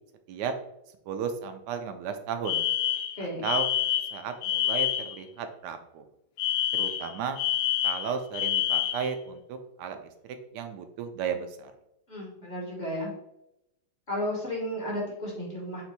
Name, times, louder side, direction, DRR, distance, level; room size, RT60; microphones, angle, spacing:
voice 1, 1.1-2.7 3.4-3.7 4.1-6.0 6.7-7.4 7.8-10.0 10.5-11.7, right 6 dB, 75° right, 7 dB, 1.1 m, -34 dB
Alarm, 2.4-5.2 6.4-9.1, left 11 dB, 80° left, 1.2 m, -27 dB
voice 2, 3.2-3.5 12.1-13.1 14.1-15.8, equal, 30° left, -3 dB, 1.1 m, -33 dB
4.3 x 2.5 x 4.0 m, 0.83 s
omnidirectional pair, 1.9 m